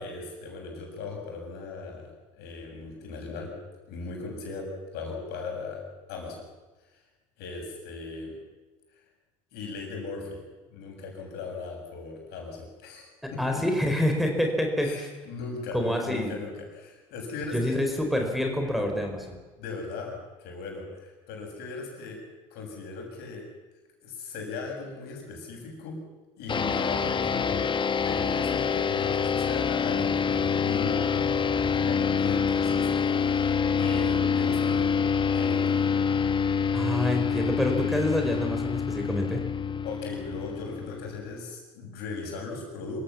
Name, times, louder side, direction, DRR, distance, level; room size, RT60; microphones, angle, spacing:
voice 1, 0.0-2.1 2.3-3.5 3.9-4.7 4.9-5.8 6.1-6.5 7.4-8.3 9.5-13.6 14.8-17.8 19.6-22.2 22.5-23.4 24.0-26.0 26.4-27.6 28.0-35.1 35.3-35.8 39.8-43.0, left 4 dB, 65° left, 1 dB, 7.4 m, -38 dB
voice 2, 13.2-15.1 15.7-16.3 17.5-19.4 36.7-39.4, left 1 dB, ahead, 2 dB, 4.5 m, -27 dB
sound 1, 26.5-41.3, left 6 dB, 25° left, 1.1 m, -26 dB
26.0 x 15.5 x 7.3 m, 1.2 s
hypercardioid pair, 75°, 18 cm